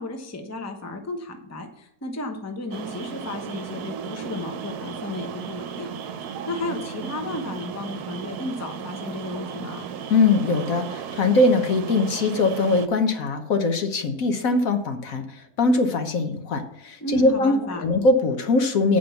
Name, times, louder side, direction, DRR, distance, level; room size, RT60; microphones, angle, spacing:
voice 1, 0.0-5.9 6.5-9.9 17.0-17.8, left 2 dB, 15° left, 4 dB, 0.8 m, -33 dB
sound 1, 2.7-12.9, right 7 dB, 75° right, 1.2 m, -35 dB
voice 2, 10.1-19.0, left 3 dB, 60° left, 7 dB, 1.2 m, -21 dB
8.7 x 5.2 x 6.9 m, 0.77 s
omnidirectional pair, 1.7 m